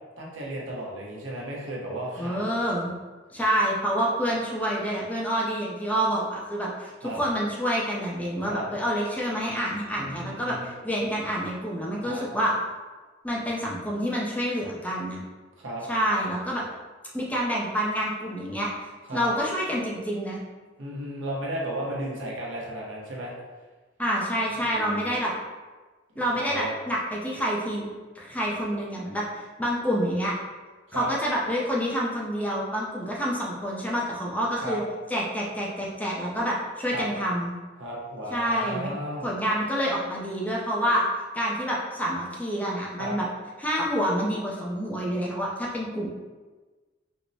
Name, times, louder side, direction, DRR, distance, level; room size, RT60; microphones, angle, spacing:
voice 1, 0.2-2.4 7.0-7.2 8.4-8.6 10.0-10.7 12.0-12.2 15.6-15.8 19.1-19.3 20.8-23.3 24.7-25.0 26.3-26.7 30.9-31.1 34.6-34.8 36.9-37.1 37.8-39.3 43.0-43.1, right 1 dB, 70° right, -4 dB, 0.8 m, -34 dB
voice 2, 2.2-2.9 3.3-12.5 13.2-15.2 15.9-16.6 17.1-18.7 19.1-20.4 24.0-25.3 26.2-27.8 28.2-30.3 30.9-34.8 35.1-37.5 38.3-38.9 39.2-41.0 41.3-43.3 43.6-46.1, equal, 10° left, -4 dB, 0.4 m, -27 dB
4.5 x 2.0 x 2.6 m, 1.3 s
head